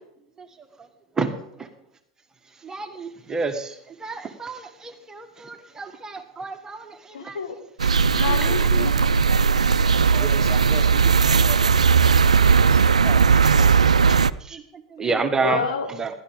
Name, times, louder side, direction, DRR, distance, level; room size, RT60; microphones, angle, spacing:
voice 1, 2.6-7.4 8.7-8.9 10.1-10.2 14.5-14.6 14.9-15.6 16.0-16.1, right 4 dB, 15° right, 6 dB, 1.4 m, -29 dB
voice 2, 7.1-7.6 8.1-9.3 15.4-15.9, left 6 dB, 75° left, 6 dB, 2.0 m, -29 dB
sound 1, 7.8-14.3, right 5 dB, 90° right, 0.4 m, -17 dB
voice 3, 10.0-11.6 12.0-13.8, left 1 dB, 20° left, 3 dB, 3.0 m, -39 dB
16.0 x 12.5 x 3.6 m, 0.75 s
hypercardioid pair, 95°, 3 cm